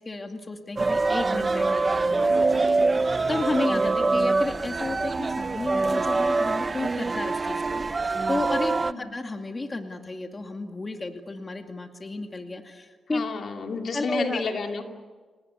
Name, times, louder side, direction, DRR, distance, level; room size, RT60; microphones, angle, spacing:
voice 1, 0.0-13.2 13.9-14.4, left 2 dB, 25° left, 4 dB, 2.3 m, -32 dB
sound 1, 0.8-8.9, right 3 dB, 30° right, 0.7 m, -24 dB
voice 2, 13.1-14.8, left 4 dB, 60° left, 3 dB, 2.8 m, -30 dB
29.0 x 19.5 x 9.6 m, 1.5 s
cardioid pair, 100°, 0 cm